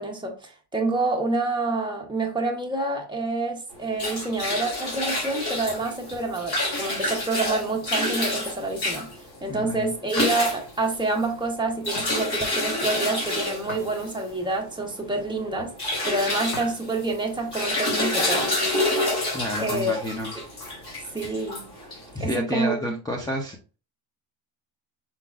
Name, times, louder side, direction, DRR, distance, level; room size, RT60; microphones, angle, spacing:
voice 1, 0.0-9.1 9.4-15.7 16.0-18.5 19.6-20.0 21.1-21.7 22.2-23.0, right 2 dB, 10° right, 1.0 m, -27 dB
sound 1, 3.7-22.2, left 1 dB, 50° left, 2.8 m, -29 dB
voice 2, 9.5-9.9 19.3-20.3 21.9-23.8, equal, 10° left, 0.6 m, -30 dB
sound 2, 10.2-10.4 11.0-11.2 11.9-12.2 13.7-14.4 16.5-16.8 17.3-17.4 19.1-19.8, left 3 dB, 75° left, 2.1 m, -40 dB
5.7 x 3.8 x 2.4 m
cardioid pair, 155°, 49 cm